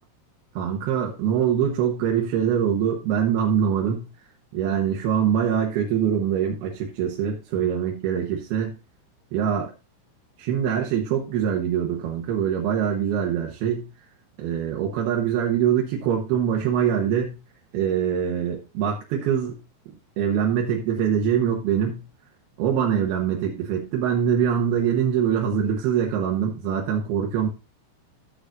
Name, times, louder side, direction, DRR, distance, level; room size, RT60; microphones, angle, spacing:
voice 1, 0.5-4.0 4.5-8.8 9.3-9.7 10.4-13.8 14.4-17.3 17.7-19.6 20.2-22.0 22.6-27.5, right 8 dB, 70° right, -1 dB, 2.6 m, -23 dB
13.5 x 7.0 x 2.6 m, 0.28 s
omnidirectional pair, 5.8 m